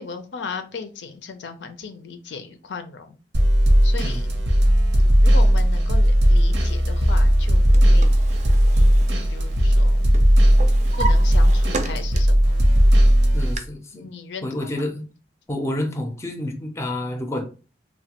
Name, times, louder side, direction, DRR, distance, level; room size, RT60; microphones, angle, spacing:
voice 1, 0.0-3.2 3.8-4.3 5.2-8.1 8.7-10.1 11.0-12.6 13.9-14.9, left 5 dB, 75° left, 0.5 m, -36 dB
sound 1, 3.3-13.6, equal, 90° right, 0.8 m, -16 dB
Drawer open or close, 7.4-9.8 10.1-12.5 12.9-13.6, right 3 dB, 40° right, 0.4 m, -34 dB
voice 2, 13.3-14.1 14.4-15.1 15.5-17.5, left 1 dB, 15° left, 0.5 m, -29 dB
3.1 x 2.2 x 2.9 m
head